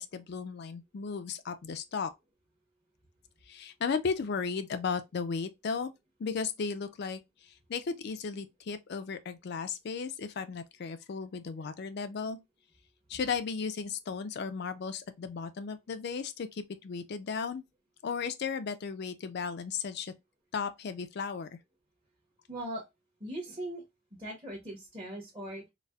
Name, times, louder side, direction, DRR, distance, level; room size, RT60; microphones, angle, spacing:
voice 1, 0.0-2.1 3.5-5.9 6.2-7.2 7.7-12.4 13.1-17.6 18.0-20.1 20.5-21.5, left 5 dB, 50° left, 0.4 m, -35 dB
voice 2, 22.5-22.8 23.2-23.8 24.2-25.7, right 1 dB, 20° right, 0.8 m, -39 dB
4.0 x 2.1 x 2.3 m
head